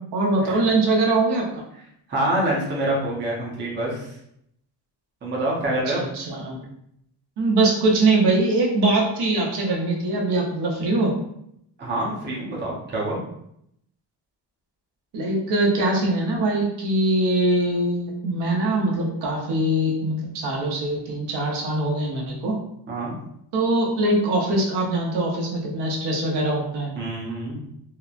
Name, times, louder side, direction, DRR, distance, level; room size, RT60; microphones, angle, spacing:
voice 1, 0.1-1.6 6.0-6.6 7.4-11.1 15.1-22.5 23.5-26.9, right 2 dB, 70° right, -2 dB, 0.8 m, -22 dB
voice 2, 2.1-4.1 5.2-6.0 11.8-13.2 22.9-23.2 27.0-27.6, right 1 dB, 25° right, -5 dB, 0.6 m, -26 dB
3.0 x 2.0 x 2.4 m, 0.75 s
cardioid pair, 165°, 43 cm